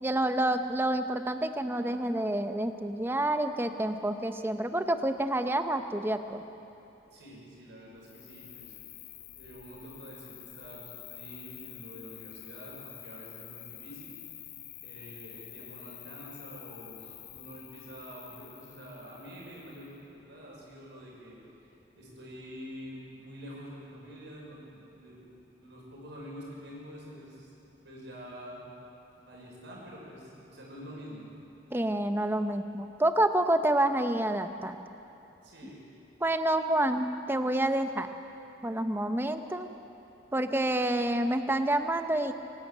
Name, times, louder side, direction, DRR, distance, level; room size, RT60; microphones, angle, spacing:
voice 1, 0.0-6.4 31.7-34.8 36.2-38.1 38.6-39.7 40.3-42.3, right 1 dB, 10° right, 8 dB, 0.8 m, -28 dB
voice 2, 7.1-8.7 9.4-14.2 14.8-21.3 22.0-25.2 25.6-27.5 27.8-28.6 29.3-31.3 35.4-35.9, equal, 70° right, -4 dB, 5.8 m, -47 dB
Cricket, 8.0-20.0, left 13 dB, 80° left, 1.3 m, -48 dB
24.5 x 11.5 x 9.0 m, 2.9 s
head